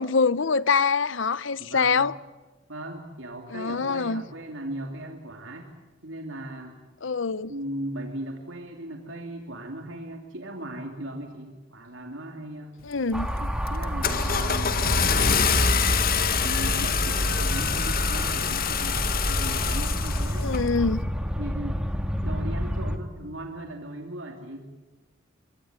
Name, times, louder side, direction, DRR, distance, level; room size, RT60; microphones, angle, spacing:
voice 1, 0.0-2.1 3.5-4.2 7.0-7.5 12.8-13.3 20.4-21.0, left 5 dB, 70° left, 0.8 m, -24 dB
voice 2, 1.6-2.1 2.7-5.7 6.0-6.8 7.5-12.7 13.4-15.6 16.4-20.5 21.4-21.8 22.2-24.7, right 1 dB, 75° right, 2.8 m, -37 dB
Car / Engine starting, 12.9-13.2 13.7-20.6, left 5 dB, 50° left, 1.7 m, -25 dB
sound 1, 13.1-23.0, equal, 5° right, 2.3 m, -29 dB
24.5 x 22.5 x 9.0 m
head